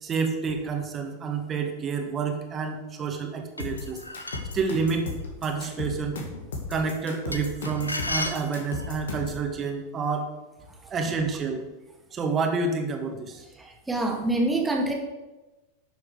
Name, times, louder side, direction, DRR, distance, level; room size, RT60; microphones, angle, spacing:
voice 1, 0.0-4.0 4.3-5.1 5.4-6.2 6.7-10.3 10.8-11.7 12.1-13.5, right 4 dB, 25° right, 4 dB, 1.7 m, -29 dB
sound 1, 3.6-4.6 7.3-9.0, left 1 dB, 85° left, 0.9 m, -33 dB
sound 2, 3.6-9.4, left 3 dB, 65° left, 2.0 m, -35 dB
voice 2, 13.6-14.9, right 2 dB, 10° right, 1 dB, 2.1 m, -26 dB
11.5 x 7.0 x 5.0 m, 1.1 s
figure-of-eight pair, 90°, 0 cm